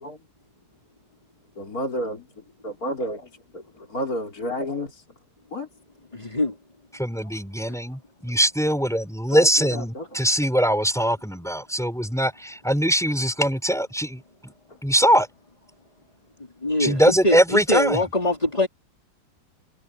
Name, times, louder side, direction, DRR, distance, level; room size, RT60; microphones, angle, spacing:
voice 1, 1.6-2.3 2.6-5.0 5.5-5.7 9.3-10.0, equal, 50° left, 4.5 m, -31 dB
voice 2, 6.1-6.5 16.6-18.7, left 1 dB, 20° left, 3.8 m, -23 dB
voice 3, 6.9-14.5 14.8-15.3 16.8-18.0, equal, ahead, 5.7 m, -22 dB
omnidirectional pair, 2.0 m